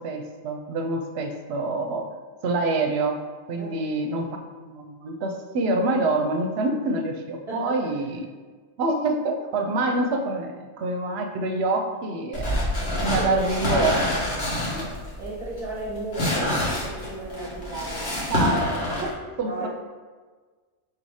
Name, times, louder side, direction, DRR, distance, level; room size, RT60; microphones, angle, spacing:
voice 1, 0.0-2.1 2.4-3.2 3.5-8.3 8.8-12.6 13.0-14.0 14.3-14.9 17.7-19.7, right 2 dB, 70° right, 4 dB, 0.8 m, -27 dB
voice 2, 3.6-4.2 7.5-7.9 13.2-13.5 15.2-18.2 19.4-19.7, right 2 dB, 35° right, -7 dB, 0.8 m, -35 dB
sound 1, 12.3-19.1, left 1 dB, 60° left, 1.4 m, -26 dB
4.1 x 2.7 x 4.7 m, 1.4 s
omnidirectional pair, 1.2 m